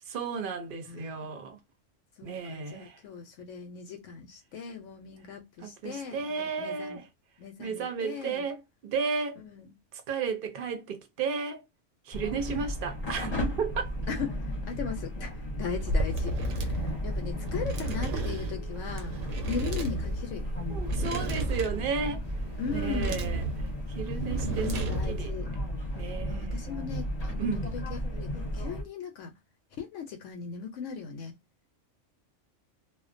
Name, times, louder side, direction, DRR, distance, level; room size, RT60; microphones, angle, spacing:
voice 1, 0.1-1.6 2.2-3.0 5.6-7.1 7.6-9.4 9.9-11.6 12.1-13.9 20.7-22.2 22.7-23.5 24.0-25.3 25.9-26.6 27.4-27.7, right 5 dB, 55° right, 0.7 m, -33 dB
voice 2, 0.8-1.3 2.2-7.0 7.4-8.5 9.4-9.7 12.5-12.6 14.1-15.3 15.6-16.3 17.0-19.2 19.4-20.5 22.6-23.2 24.4-25.5 26.3-27.5 27.7-29.3 29.8-31.3, left 6 dB, 75° left, 0.9 m, -38 dB
sound 1, 12.1-28.8, equal, 35° left, 0.8 m, -35 dB
sound 2, 15.7-25.3, right 1 dB, 80° right, 1.0 m, -33 dB
2.4 x 2.1 x 2.5 m
omnidirectional pair, 1.3 m